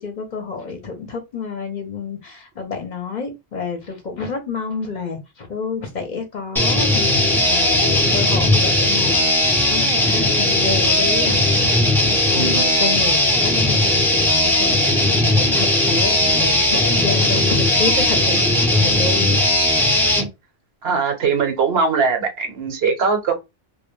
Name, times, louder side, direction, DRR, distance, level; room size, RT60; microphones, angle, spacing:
voice 1, 0.0-18.4 18.7-19.3, left 4 dB, 50° left, 0.7 m, -29 dB
sound 1, 6.6-20.3, left 1 dB, 5° left, 0.4 m, -17 dB
voice 2, 12.3-12.7 20.8-23.3, right 5 dB, 70° right, 1.0 m, -21 dB
2.2 x 2.1 x 3.1 m
omnidirectional pair, 1.1 m